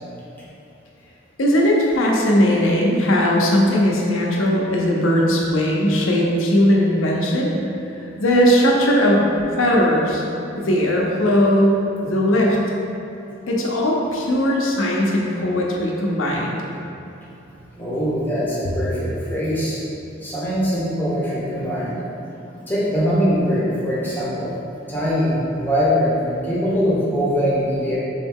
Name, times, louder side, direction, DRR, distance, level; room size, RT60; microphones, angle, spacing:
voice 1, 1.4-7.5 8.2-9.3 9.6-10.2 10.6-12.6 13.5-16.6, equal, 75° left, -2 dB, 0.7 m, -18 dB
voice 2, 17.8-19.8 20.2-22.0 22.7-24.5 24.9-28.0, equal, 10° left, -8 dB, 0.9 m, -22 dB
3.9 x 3.1 x 3.5 m, 2.9 s
head